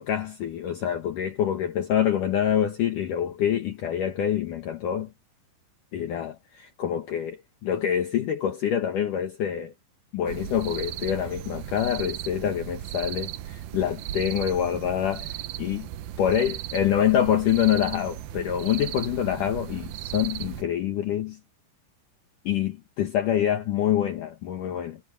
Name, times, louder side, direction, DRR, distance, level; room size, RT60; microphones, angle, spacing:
voice 1, 0.0-5.1 5.9-9.7 10.1-15.9 16.2-21.4 22.5-25.0, left 10 dB, 65° left, 2.1 m, -26 dB
sound 1, 10.3-20.6, right 13 dB, 90° right, 2.2 m, -36 dB
omnidirectional pair, 5.8 m